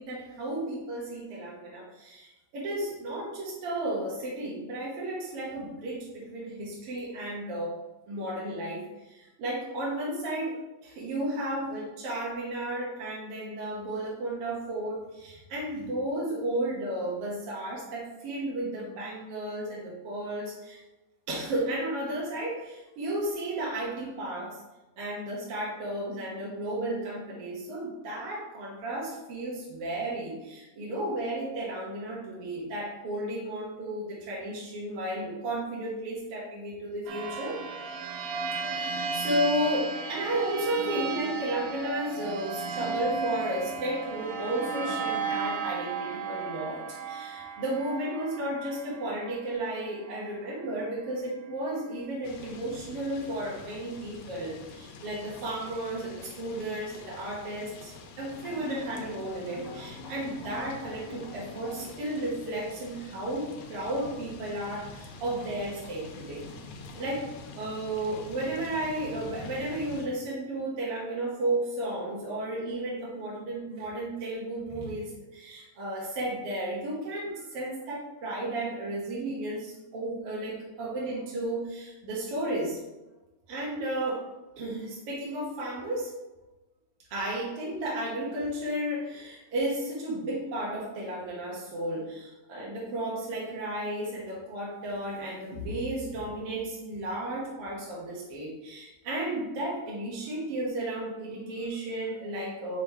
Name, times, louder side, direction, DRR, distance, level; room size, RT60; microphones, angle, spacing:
voice 1, 0.0-7.8 8.1-20.8 21.3-24.6 25.0-37.6 38.6-66.5 66.9-82.8 83.5-84.3 84.6-86.1 87.1-102.8, right 1 dB, 65° right, -5 dB, 1.5 m, -33 dB
sound 1, 37.1-50.3, right 4 dB, 90° right, 2.5 m, -34 dB
sound 2, 52.2-70.1, left 3 dB, 80° left, 2.2 m, -47 dB
sound 3, 58.3-61.9, left 2 dB, 65° left, 2.2 m, -44 dB
6.0 x 3.7 x 4.5 m, 1.1 s
omnidirectional pair, 4.0 m